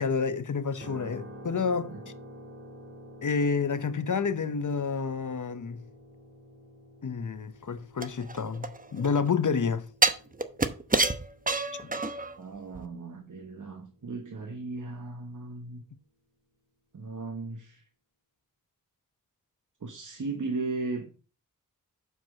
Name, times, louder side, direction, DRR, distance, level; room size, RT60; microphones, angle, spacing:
voice 1, 0.0-1.9 3.2-5.8 7.0-9.9 11.8-11.9, left 5 dB, 60° left, 0.9 m, -29 dB
sound 1, 0.8-14.8, equal, 40° right, 2.0 m, -50 dB
sound 2, 8.0-9.2 10.0-12.4 12.7-12.8, right 3 dB, 25° right, 0.8 m, -27 dB
voice 2, 12.4-15.8 16.9-17.8 19.8-21.0, right 3 dB, 60° right, 1.2 m, -36 dB
6.0 x 4.7 x 6.4 m
cardioid pair, 45°, 34 cm